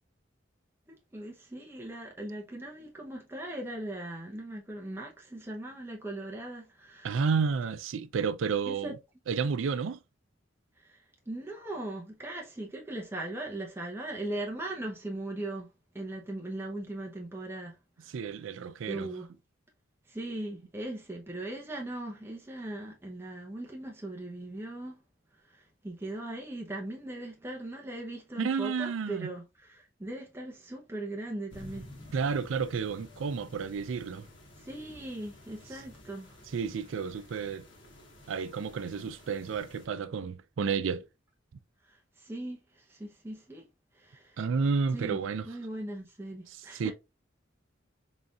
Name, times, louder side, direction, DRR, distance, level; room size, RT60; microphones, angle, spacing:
voice 1, 0.9-7.2 8.7-8.9 10.8-11.0 11.3-15.7 15.9-18.1 18.9-19.3 20.1-25.0 25.5-31.9 34.6-36.4 41.9-43.6 43.9-44.4 44.9-45.2 45.4-46.9, right 1 dB, 15° right, 0.7 m, -39 dB
voice 2, 7.0-9.0 9.3-10.0 18.1-19.1 28.4-29.3 32.1-34.3 36.5-37.6 38.3-41.1 44.4-45.5 46.7-46.9, right 5 dB, 85° right, 0.4 m, -31 dB
sound 1, 31.5-39.9, left 1 dB, 75° left, 1.6 m, -52 dB
4.0 x 3.7 x 2.3 m
head